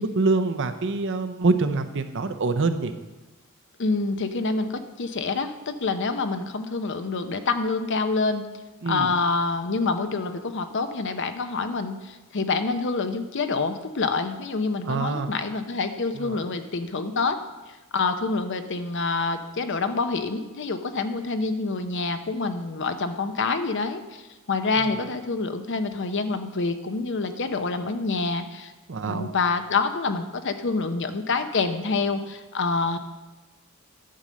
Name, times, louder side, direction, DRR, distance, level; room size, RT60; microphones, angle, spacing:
voice 1, 0.0-2.9 8.8-9.1 14.8-15.4 16.2-16.5 24.8-25.0 28.9-29.3, right 3 dB, 55° right, 9 dB, 0.7 m, -25 dB
voice 2, 3.8-8.4 8.9-17.4 17.7-24.2 24.5-28.7 29.1-33.0, left 3 dB, 55° left, 9 dB, 0.7 m, -27 dB
10.5 x 5.3 x 7.4 m, 1.1 s
head